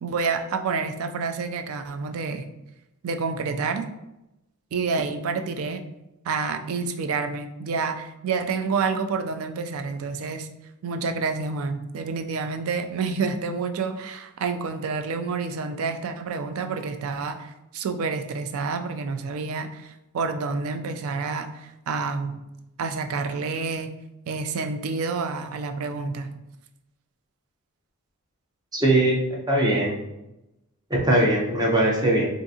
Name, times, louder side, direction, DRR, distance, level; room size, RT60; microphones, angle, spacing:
voice 1, 0.0-2.5 3.0-3.9 4.7-5.8 6.2-10.5 10.8-22.4 22.8-23.9 24.3-26.4, right 4 dB, 75° right, 7 dB, 0.4 m, -28 dB
voice 2, 28.7-29.9 30.9-32.3, right 1 dB, 20° right, -2 dB, 0.6 m, -21 dB
3.6 x 2.5 x 2.7 m, 0.93 s
head